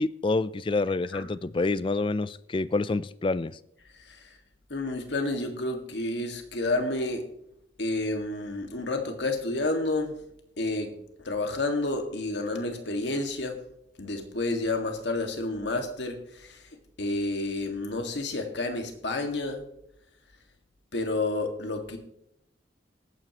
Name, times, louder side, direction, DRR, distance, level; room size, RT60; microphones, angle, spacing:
voice 1, 0.0-3.6, left 3 dB, 25° left, 17 dB, 0.4 m, -27 dB
voice 2, 3.9-4.3 4.7-7.2 7.8-10.2 10.6-11.0 11.2-13.6 14.0-16.7 17.0-19.6 20.9-22.0, left 2 dB, 65° left, 5 dB, 1.9 m, -30 dB
20.0 x 9.1 x 3.0 m, 0.77 s
head